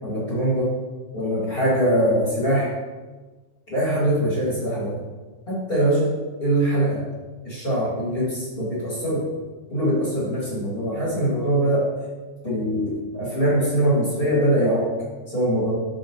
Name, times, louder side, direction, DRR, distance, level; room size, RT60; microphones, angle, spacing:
voice 1, 0.0-0.7 1.1-2.7 3.7-4.9 5.5-6.1 6.4-7.0 7.4-9.2 9.7-11.8 12.4-14.8 15.3-15.7, right 1 dB, 20° left, -8 dB, 1.8 m, -22 dB
7.0 x 5.8 x 3.0 m, 1.3 s
omnidirectional pair, 3.6 m